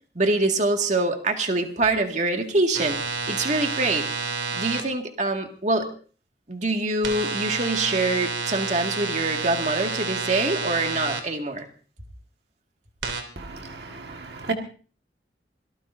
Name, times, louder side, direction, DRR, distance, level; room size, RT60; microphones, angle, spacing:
voice 1, 0.2-4.1 4.5-5.9 6.5-11.7, right 2 dB, 40° right, 4 dB, 2.1 m, -25 dB
sound 1, 2.7-4.8 7.0-11.2 13.0-13.2, right 4 dB, 85° right, 3.2 m, -29 dB
voice 2, 13.4-14.5, right 4 dB, 65° right, 3 dB, 1.8 m, -33 dB
25.5 x 18.5 x 2.7 m, 0.41 s
head